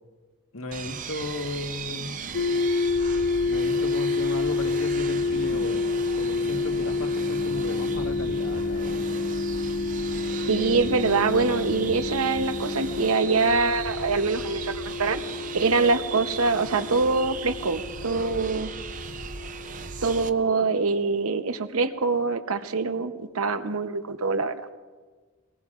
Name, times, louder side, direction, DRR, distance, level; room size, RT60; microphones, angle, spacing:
voice 1, 0.5-2.2 3.5-5.9 6.1-9.1, left 2 dB, 80° left, 4 dB, 1.5 m, -35 dB
sound 1, 0.7-20.3, right 5 dB, 35° right, 0.6 m, -38 dB
sound 2, 2.3-20.3, left 3 dB, 65° left, 0.8 m, -29 dB
sound 3, 7.1-13.1, equal, 20° left, 1.1 m, -37 dB
voice 2, 10.5-15.2 15.5-18.7 20.0-24.6, right 4 dB, 85° right, 9 dB, 0.9 m, -24 dB
24.0 x 19.0 x 2.5 m, 1.4 s
head